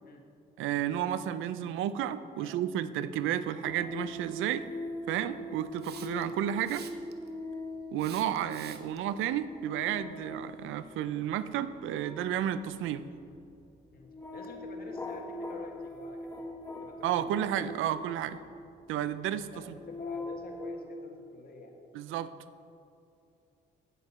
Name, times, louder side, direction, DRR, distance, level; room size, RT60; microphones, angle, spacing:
voice 1, 0.6-4.6 5.1-6.9 7.9-13.0 17.0-18.4 18.9-19.5 21.9-22.3, right 11 dB, 85° right, 14 dB, 0.4 m, -32 dB
sound 1, 3.6-18.7 19.4-20.7, left 1 dB, 10° left, 1.1 m, -42 dB
Hiss, 5.8-6.3 6.7-7.3 8.0-9.0, right 8 dB, 55° right, 0.8 m, -48 dB
voice 2, 13.9-16.4 16.8-17.3 19.5-21.8, left 3 dB, 50° left, 2 dB, 1.4 m, -48 dB
8.8 x 8.0 x 4.2 m, 2.5 s
cardioid pair, 90°, 20 cm